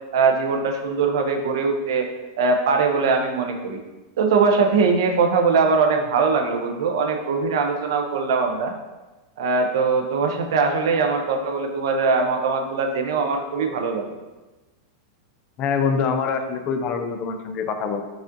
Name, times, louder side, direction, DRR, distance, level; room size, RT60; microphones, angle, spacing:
voice 1, 0.1-2.1 2.4-3.8 4.2-8.7 9.4-14.1, right 4 dB, 75° right, 4 dB, 0.5 m, -21 dB
voice 2, 15.6-18.0, left 5 dB, 35° left, 6 dB, 0.3 m, -24 dB
4.8 x 2.4 x 2.6 m, 1.1 s
supercardioid pair, 140°, 2 cm